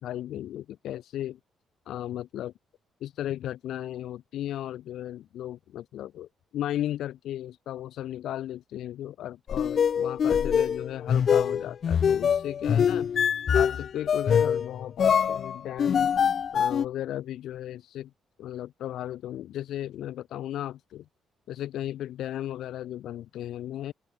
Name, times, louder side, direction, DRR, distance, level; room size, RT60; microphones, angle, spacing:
voice 1, 0.0-1.4 1.9-2.5 3.0-13.1 13.5-16.1 16.5-18.1 18.4-21.1 21.5-23.9, left 12 dB, 80° left, 7.4 m, -35 dB
sound 1, 9.5-16.8, left 7 dB, 55° left, 5.3 m, -24 dB
open air
cardioid pair, 90°, 0 cm